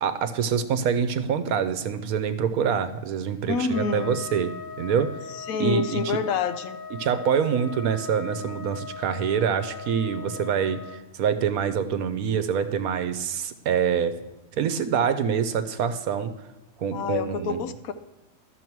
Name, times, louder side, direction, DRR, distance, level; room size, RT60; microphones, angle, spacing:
voice 1, 0.0-4.5 4.8-5.1 5.6-6.2 7.0-14.2 14.6-16.3 16.8-17.6, right 7 dB, 80° right, 10 dB, 1.2 m, -25 dB
voice 2, 3.5-4.2 5.3-6.8 16.9-17.9, left 5 dB, 80° left, 10 dB, 1.1 m, -27 dB
Trumpet, 3.7-11.0, left 5 dB, 50° left, 0.7 m, -39 dB
12.5 x 6.6 x 4.6 m, 1.0 s
omnidirectional pair, 1.5 m